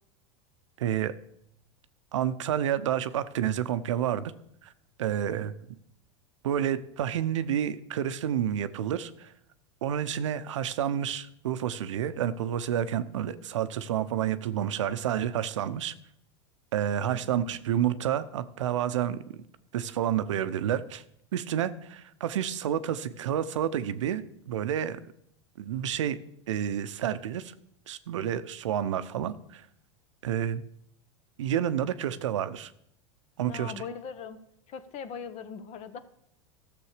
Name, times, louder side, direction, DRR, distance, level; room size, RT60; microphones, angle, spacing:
voice 1, 0.8-1.1 2.1-4.3 4.6-4.7 5.0-5.5 6.4-9.3 9.8-15.9 16.7-19.2 19.7-21.0 21.3-25.0 25.6-26.2 26.5-27.5 27.9-29.6 30.2-30.6 31.4-32.7 33.4-33.7, right 10 dB, 80° right, 13 dB, 0.7 m, -29 dB
voice 2, 33.5-34.4 34.7-36.0, left 6 dB, 45° left, 12 dB, 1.0 m, -40 dB
13.5 x 7.0 x 4.9 m, 0.74 s
hypercardioid pair, 100°, 16 cm